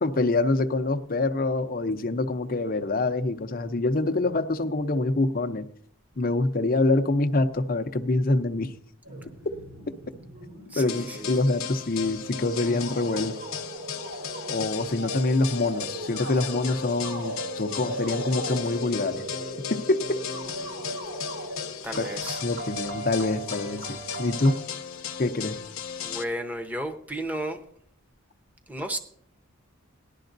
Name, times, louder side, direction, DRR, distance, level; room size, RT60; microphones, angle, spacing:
voice 1, 0.0-5.7 6.2-8.7 10.8-13.4 14.5-19.3 19.7-20.2 22.0-22.1 22.4-24.6 25.2-25.6, left 2 dB, 40° left, 9 dB, 0.7 m, -25 dB
sound 1, 9.0-24.5, right 1 dB, 75° right, 3.8 m, -38 dB
voice 2, 10.7-11.3 21.8-22.4 26.0-27.6 28.7-29.0, right 1 dB, 10° right, 6 dB, 0.9 m, -33 dB
sound 2, 10.9-26.2, left 7 dB, 80° left, 0.8 m, -36 dB
18.5 x 11.5 x 2.6 m, 0.66 s
head